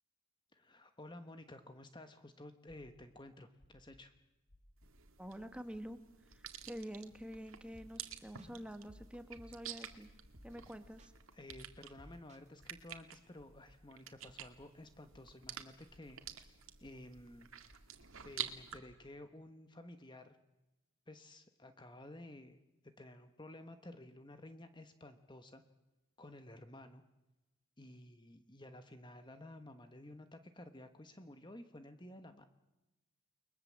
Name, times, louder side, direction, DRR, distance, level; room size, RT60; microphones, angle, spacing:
voice 1, 0.5-4.1 11.3-17.5 18.2-20.4 21.1-22.6 23.0-25.6 26.2-27.0 27.8-32.5, left 1 dB, 20° left, 8 dB, 1.2 m, -53 dB
sound 1, 2.7-3.1 3.6-4.0 4.5-5.0 5.4-5.8 6.3-6.7 7.2-7.6 8.1-8.5 9.0-9.5 9.9-10.3 10.8-11.3 11.7-12.1 12.6-13.8 14.2-14.7 15.1-15.6 15.9-16.4 16.8-17.3 17.7-18.2 18.5-19.0, left 1 dB, 75° left, 7.4 m, -65 dB
sound 2, 4.8-18.8, right 10 dB, 75° right, 2.1 m, -50 dB
voice 2, 5.2-10.1 10.4-11.1, equal, 5° right, 8 dB, 1.6 m, -48 dB
sound 3, 7.7-8.1 8.4-10.0 10.3-10.7 11.0-12.8, equal, 30° right, 2.0 m, -59 dB
30.0 x 22.0 x 7.6 m, 1.0 s
head